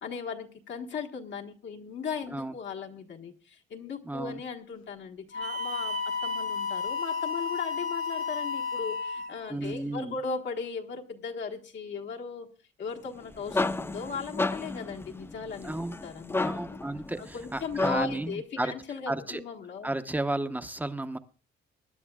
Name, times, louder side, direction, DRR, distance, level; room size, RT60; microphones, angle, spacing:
voice 1, 0.0-6.0 6.2-12.5 12.8-16.8 17.2-19.9, left 5 dB, 65° left, 1 dB, 1.4 m, -37 dB
voice 2, 4.0-4.4 9.5-10.2 15.6-16.0 16.4-18.7 19.1-19.4 19.8-21.2, right 2 dB, 10° right, 10 dB, 0.9 m, -33 dB
Wind instrument woodwind instrument, 5.3-9.5, left 5 dB, 85° left, 0.9 m, -32 dB
Hiss / Alarm, 5.4-10.2, right 8 dB, 70° right, 2.0 m, -45 dB
sound 1, 13.1-18.3, left 2 dB, 10° left, 0.5 m, -33 dB
24.0 x 10.5 x 2.4 m, 0.37 s
cardioid pair, 90°, 20 cm